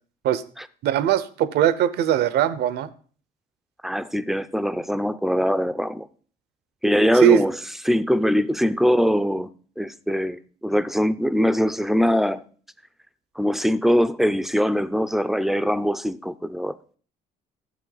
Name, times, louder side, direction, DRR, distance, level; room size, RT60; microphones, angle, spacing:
voice 1, 0.8-2.9 7.1-7.4, right 10 dB, 75° right, 0.8 m, -20 dB
voice 2, 3.8-6.1 6.8-7.5 7.9-9.5 9.8-12.4 13.4-16.7, equal, ahead, 0.4 m, -22 dB
12.5 x 7.6 x 3.9 m
cardioid pair, 110°, 17 cm